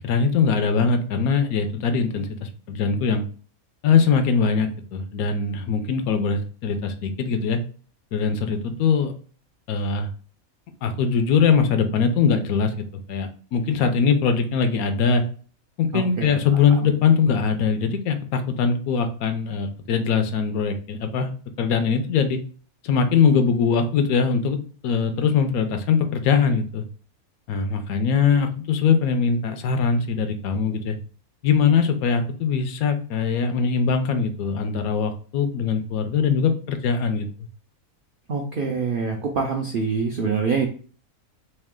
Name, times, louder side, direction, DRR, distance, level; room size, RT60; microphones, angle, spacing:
voice 1, 0.0-3.2 3.8-7.6 8.1-9.1 9.7-10.1 10.8-15.2 15.8-21.3 21.6-22.4 22.8-26.8 27.5-31.0 31.4-37.3, left 6 dB, 80° left, 8 dB, 1.1 m, -22 dB
voice 2, 15.9-16.4 38.3-40.7, right 5 dB, 70° right, 2 dB, 0.5 m, -25 dB
3.2 x 2.8 x 3.6 m, 0.41 s
omnidirectional pair, 1.5 m